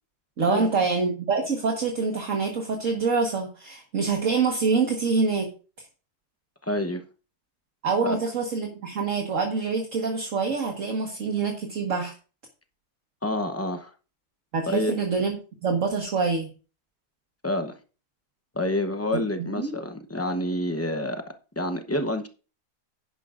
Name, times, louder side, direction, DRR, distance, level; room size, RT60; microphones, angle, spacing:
voice 1, 0.4-5.5 7.8-12.1 14.5-15.4 15.6-16.5 19.6-19.7, right 4 dB, 55° right, 1.8 m, -25 dB
voice 2, 6.6-7.0 8.0-8.2 13.2-13.9 14.7-14.9 17.4-17.8 18.5-21.2 21.6-22.3, left 1 dB, 15° left, 0.6 m, -28 dB
11.0 x 10.5 x 2.5 m
omnidirectional pair, 1.7 m